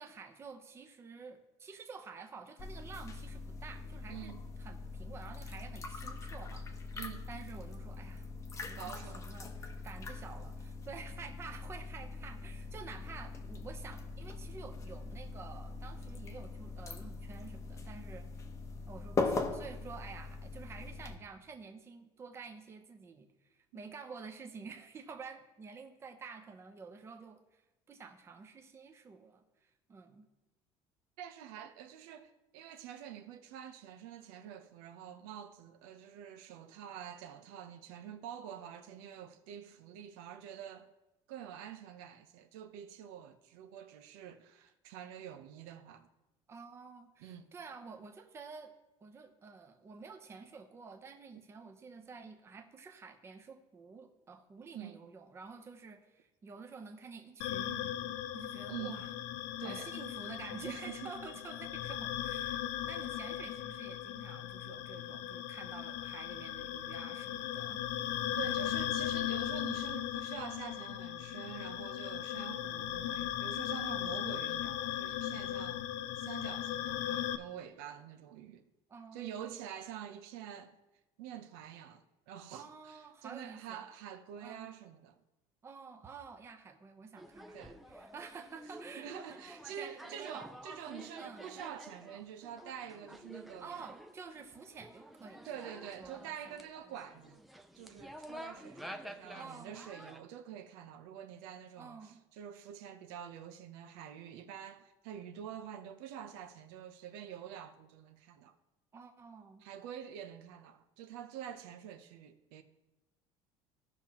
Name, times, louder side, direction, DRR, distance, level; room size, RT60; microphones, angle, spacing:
voice 1, 0.0-7.0 7.3-8.3 8.6-18.3 18.9-30.3 46.5-48.7 49.0-59.1 59.6-62.6 62.9-67.8 68.3-68.8 78.9-79.6 82.5-83.9 84.4-84.7 85.6-90.6 91.2-91.5 93.6-96.6 99.3-99.9 101.8-102.2 108.9-109.7, right 5 dB, 20° right, 0.8 m, -50 dB
sound 1, 2.6-21.2, left 3 dB, 25° left, 0.8 m, -41 dB
voice 2, 6.9-7.3 8.8-9.3 31.2-40.9 41.3-46.1 47.2-47.5 54.7-55.0 58.7-59.0 59.6-59.9 60.7-61.2 68.4-75.9 76.2-78.6 79.1-80.8 81.2-85.2 87.5-87.8 89.0-93.9 95.4-97.4 97.7-108.5 109.6-112.6, right 9 dB, 90° right, 0.8 m, -47 dB
sound 2, 57.4-77.4, left 12 dB, 75° left, 0.5 m, -38 dB
sound 3, 87.2-100.2, equal, ahead, 0.5 m, -51 dB
16.5 x 5.9 x 3.0 m
cardioid pair, 155°, 12 cm